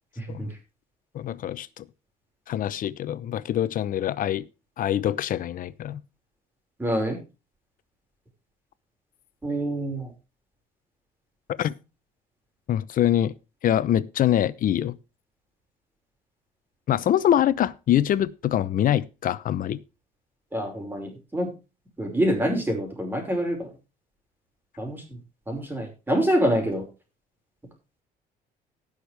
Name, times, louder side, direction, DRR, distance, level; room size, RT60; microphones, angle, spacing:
voice 1, 0.2-0.5 6.8-7.2 9.4-10.1 20.5-21.5 22.0-23.7 24.8-25.0 25.5-26.8, equal, 10° right, 5.3 m, -26 dB
voice 2, 1.1-1.8 2.5-4.4 4.8-6.0 11.6-11.7 12.7-13.3 13.6-15.0 16.9-19.8, left 11 dB, 55° left, 0.8 m, -24 dB
18.5 x 6.6 x 3.4 m
cardioid pair, 110°, 17 cm